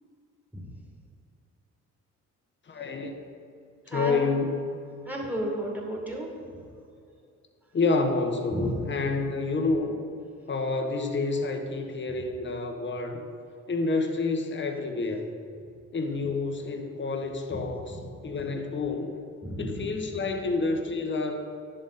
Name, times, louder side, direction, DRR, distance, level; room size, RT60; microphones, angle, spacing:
voice 1, 2.7-3.2 3.9-4.7 7.7-10.0 10.5-13.2 13.7-15.3 15.9-17.9 18.2-19.1 19.6-21.5, left 3 dB, 40° left, 4 dB, 1.3 m, -28 dB
voice 2, 3.9-4.2 5.1-6.3 8.5-8.7 17.5-17.6 19.4-19.8, equal, 5° right, -2 dB, 2.3 m, -32 dB
10.5 x 7.4 x 4.3 m, 2.4 s
cardioid pair, 90°, 30 cm